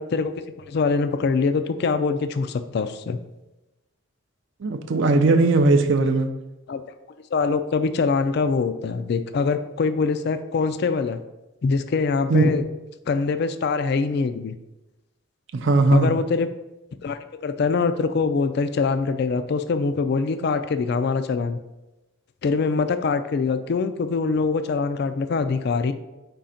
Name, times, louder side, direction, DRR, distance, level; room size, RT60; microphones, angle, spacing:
voice 1, 0.0-3.2 6.7-6.8 7.3-11.2 11.6-12.6 13.1-14.6 15.9-16.5 17.0-21.6 22.4-25.9, left 4 dB, 50° left, 9 dB, 0.3 m, -24 dB
voice 2, 4.6-6.3 12.3-12.5 15.5-16.1, right 2 dB, 60° right, 7 dB, 0.5 m, -18 dB
5.0 x 3.8 x 5.6 m, 1.0 s
head